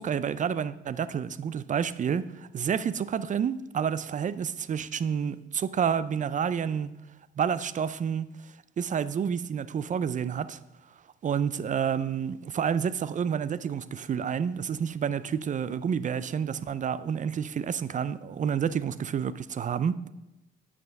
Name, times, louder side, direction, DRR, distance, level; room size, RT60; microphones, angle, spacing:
voice 1, 0.0-6.9 7.4-8.3 8.8-10.6 11.2-20.1, right 7 dB, 40° right, 0.5 m, -29 dB
9.4 x 6.0 x 6.6 m
cardioid pair, 90°, 20 cm